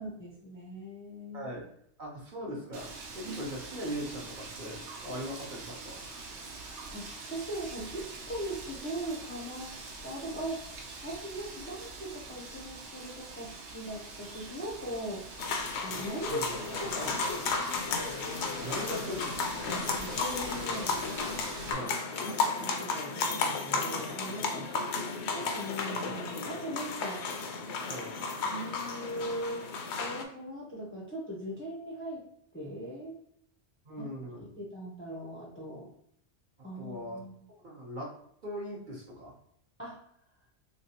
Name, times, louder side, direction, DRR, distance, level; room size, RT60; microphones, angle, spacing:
voice 1, 0.0-1.5 3.2-3.4 6.9-9.7 10.0-10.6 11.0-15.2 15.8-17.2 18.7-18.8 19.7-21.0 22.6-24.7 25.3-27.3 28.4-29.6 30.0-32.2 32.5-33.1 34.0-34.1 34.5-35.9 36.6-37.5 39.8-40.0, equal, 15° left, -3 dB, 0.5 m, -39 dB
voice 2, 1.3-1.7 2.0-6.0 16.2-16.5 18.6-19.3 21.7-22.0 24.7-25.0 27.9-28.1 33.8-34.5 36.8-37.2 37.6-38.1 38.4-39.3, equal, 50° right, -2 dB, 1.0 m, -40 dB
Wind, 2.7-21.7, right 3 dB, 85° right, 1.1 m, -44 dB
sound 1, 15.4-30.2, left 4 dB, 75° left, 0.8 m, -33 dB
3.2 x 3.1 x 2.8 m, 0.69 s
omnidirectional pair, 1.2 m